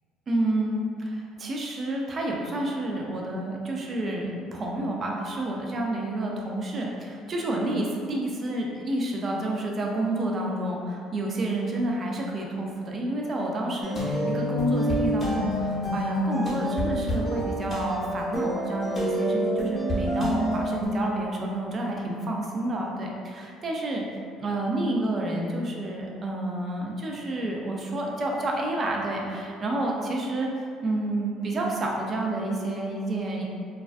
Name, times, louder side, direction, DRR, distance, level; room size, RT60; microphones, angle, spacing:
voice 1, 0.3-24.0 24.4-30.5 30.8-33.4, right 1 dB, 40° right, -1 dB, 0.4 m, -29 dB
sound 1, 13.8-20.9, equal, 30° left, 0.8 m, -27 dB
2.3 x 2.1 x 2.4 m, 2.2 s
supercardioid pair, 85°, 0 cm